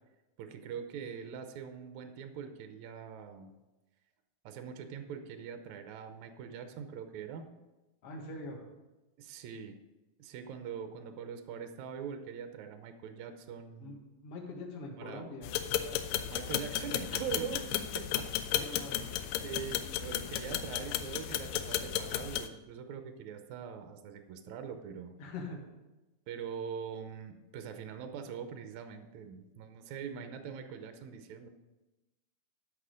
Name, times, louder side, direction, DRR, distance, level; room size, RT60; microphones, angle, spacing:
voice 1, 0.4-3.5 4.4-7.5 9.2-9.8 10.2-14.0 15.0-15.3 16.3-18.3 18.6-25.1 26.3-31.5, right 7 dB, 80° right, 7 dB, 1.6 m, -43 dB
voice 2, 8.0-8.6 13.8-15.5 15.8-16.2 18.5-19.1 25.2-25.7, left 2 dB, 50° left, 0 dB, 2.1 m, -44 dB
sound 1, 15.4-22.5, left 11 dB, 80° left, 2.1 m, -34 dB
13.0 x 5.6 x 5.0 m, 1.1 s
omnidirectional pair, 4.3 m